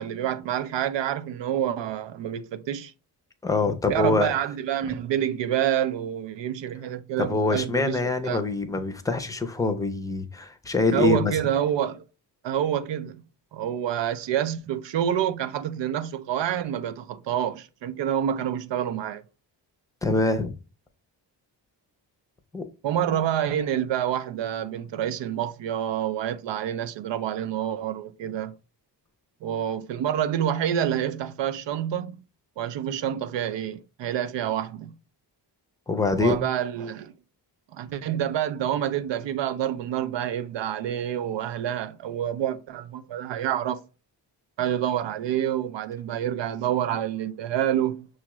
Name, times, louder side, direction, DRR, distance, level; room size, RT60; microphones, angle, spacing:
voice 1, 0.0-2.9 3.9-8.4 10.9-12.0 12.4-13.2 13.5-19.2 22.8-28.5 29.4-32.2 32.6-35.0 36.2-37.1 37.7-43.8 44.6-48.1, right 10 dB, 85° right, 0.6 m, -27 dB
voice 2, 3.4-4.3 7.2-11.3 20.0-20.5 22.5-22.6 35.9-36.5, left 3 dB, 10° left, 0.5 m, -24 dB
6.1 x 2.4 x 3.0 m
wide cardioid pair, 115°, 43 cm